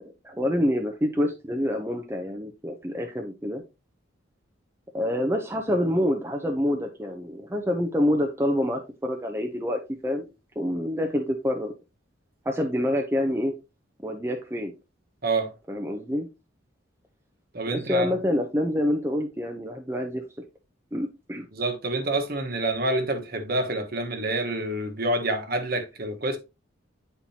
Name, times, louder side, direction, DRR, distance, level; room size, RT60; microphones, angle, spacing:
voice 1, 0.0-3.6 4.9-10.2 10.6-11.7 12.5-13.5 14.0-14.7 15.7-16.3 17.7-20.2 20.9-21.4, left 1 dB, 10° right, 0.5 m, -27 dB
voice 2, 15.2-15.5 17.5-18.1 21.5-26.4, right 2 dB, 50° right, 1.1 m, -27 dB
8.7 x 4.4 x 2.7 m
head